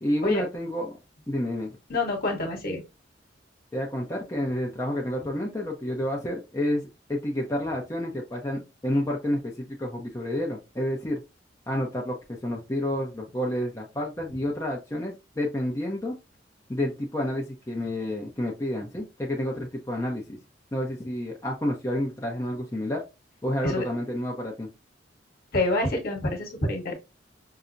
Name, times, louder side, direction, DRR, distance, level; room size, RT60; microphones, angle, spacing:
voice 1, 0.0-1.0 1.3-1.8 3.7-11.2 11.7-16.2 16.7-20.4 20.7-23.0 23.4-24.7, left 1 dB, 15° left, -2 dB, 0.6 m, -29 dB
voice 2, 1.9-2.8 23.6-23.8 25.5-26.9, left 2 dB, 55° left, 1 dB, 1.1 m, -27 dB
5.5 x 2.0 x 2.5 m, 0.26 s
head